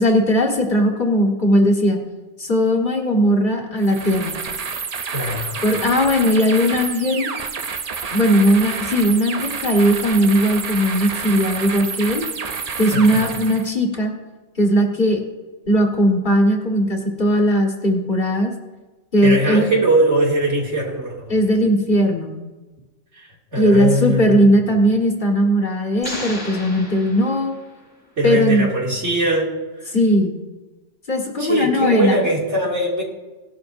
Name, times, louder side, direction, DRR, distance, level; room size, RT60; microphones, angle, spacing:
voice 1, 0.0-2.0 2.4-4.4 5.6-7.3 8.1-12.2 12.8-14.1 14.6-15.2 15.7-18.5 19.1-19.7 21.3-22.4 23.6-27.5 28.2-28.7 29.9-30.4 31.1-32.2, equal, 40° left, 1 dB, 1.8 m, -18 dB
sound 1, 3.8-13.7, right 5 dB, 40° right, 0.6 m, -29 dB
voice 2, 5.1-5.6 12.9-13.3 19.2-21.3 23.1-24.4 28.2-29.5 29.8-30.0 31.4-33.0, right 1 dB, 70° right, -2 dB, 2.9 m, -21 dB
sound 2, 26.0-27.9, left 1 dB, 15° right, 3.5 m, -33 dB
18.5 x 12.0 x 2.6 m, 1.2 s
omnidirectional pair, 1.2 m